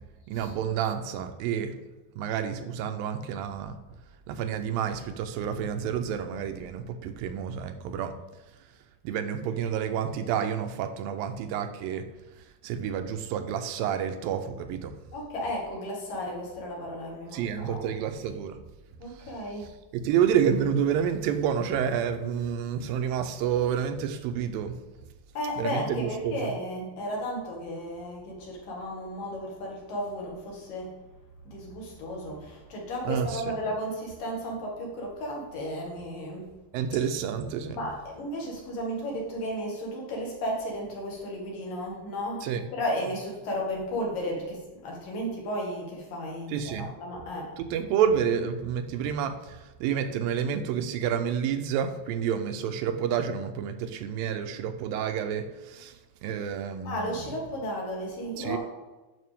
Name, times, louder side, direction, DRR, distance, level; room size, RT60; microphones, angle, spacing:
voice 1, 0.3-1.7 2.2-3.8 4.3-8.1 9.0-12.0 12.6-14.9 17.3-18.6 19.9-24.8 25.6-26.4 33.1-33.4 36.7-37.8 42.4-42.7 46.5-46.9 47.6-55.9 56.2-57.1 58.4-58.6, right 8 dB, 85° right, 8 dB, 2.4 m, -29 dB
voice 2, 15.1-17.8 19.0-19.7 25.3-30.9 31.4-36.5 37.7-47.5 56.8-58.6, equal, 70° left, -2 dB, 3.5 m, -34 dB
9.4 x 6.7 x 3.5 m, 1.1 s
omnidirectional pair, 4.1 m